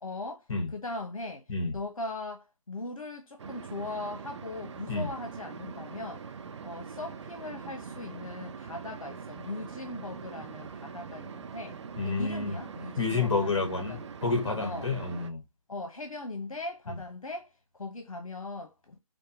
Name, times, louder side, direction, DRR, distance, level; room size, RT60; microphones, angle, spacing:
voice 1, 0.0-6.3 6.6-14.0 14.6-14.9 15.7-19.0, left 2 dB, 85° left, 1.0 m, -39 dB
sound 1, 3.4-15.3, right 6 dB, 55° right, 0.6 m, -43 dB
voice 2, 12.0-12.6 13.0-15.4 16.9-17.0, left 4 dB, 55° left, 1.6 m, -30 dB
5.1 x 2.1 x 2.9 m
figure-of-eight pair, 150°, 17 cm